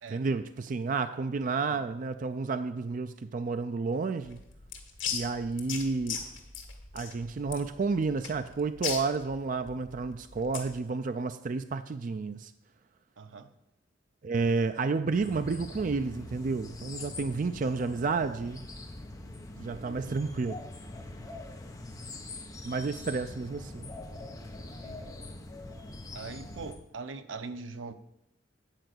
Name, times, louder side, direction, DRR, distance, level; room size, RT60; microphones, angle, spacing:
voice 1, 0.1-4.4 5.1-6.2 6.9-12.5 14.2-18.6 19.6-20.5 22.6-23.8, right 4 dB, 45° right, 0.4 m, -31 dB
sound 1, 4.2-10.8, left 7 dB, 85° left, 1.8 m, -38 dB
voice 2, 13.2-13.5 17.1-17.2 19.7-20.2 24.8-25.2 26.1-27.9, right 4 dB, 90° right, 0.7 m, -42 dB
sound 2, 15.1-26.7, left 2 dB, 20° left, 0.9 m, -43 dB
9.1 x 4.9 x 7.8 m
head